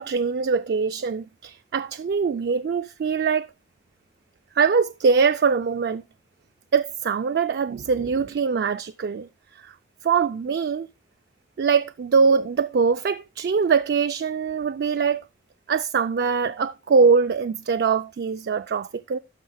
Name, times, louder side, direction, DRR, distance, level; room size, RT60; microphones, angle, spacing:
voice 1, 0.0-3.5 4.6-6.0 6.7-9.3 9.6-9.7 10.0-10.9 11.6-15.2 15.7-19.2, right 5 dB, 60° right, 0.3 m, -22 dB
12.5 x 5.4 x 3.4 m
head